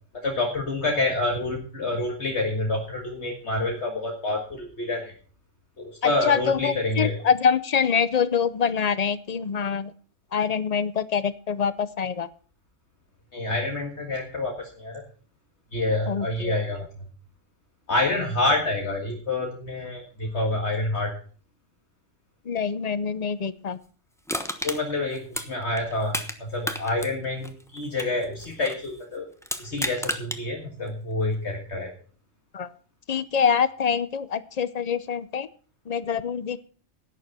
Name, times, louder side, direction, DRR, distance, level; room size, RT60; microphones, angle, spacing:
voice 1, 0.2-5.1 5.8-7.2 13.3-15.0 15.7-16.9 17.9-21.1 24.6-29.3 29.6-31.9, left 2 dB, 60° left, 1 dB, 2.1 m, -27 dB
voice 2, 6.0-9.9 10.3-12.3 16.1-16.5 22.5-23.8 32.5-32.7 33.1-35.5 35.9-36.6, left 7 dB, 40° left, 16 dB, 0.7 m, -25 dB
Crushing, 24.3-26.4 26.6-28.9 29.4-30.4 30.9-31.0, equal, 5° left, 0.9 m, -32 dB
11.5 x 9.6 x 5.7 m, 0.41 s
omnidirectional pair, 1.3 m